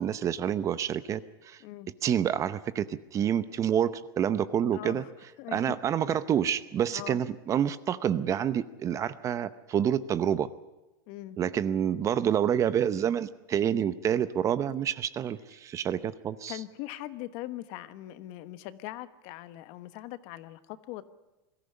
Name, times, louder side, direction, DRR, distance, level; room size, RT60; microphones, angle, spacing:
voice 1, 0.0-1.6 2.0-5.0 5.5-10.5 11.4-16.6, right 9 dB, 25° right, 15 dB, 0.7 m, -28 dB
voice 2, 4.7-5.1 5.4-5.8 6.9-7.2 11.1-11.4 16.5-21.0, left 15 dB, 50° left, 13 dB, 1.2 m, -41 dB
22.0 x 14.5 x 9.9 m, 1.0 s
supercardioid pair, 135°, 12 cm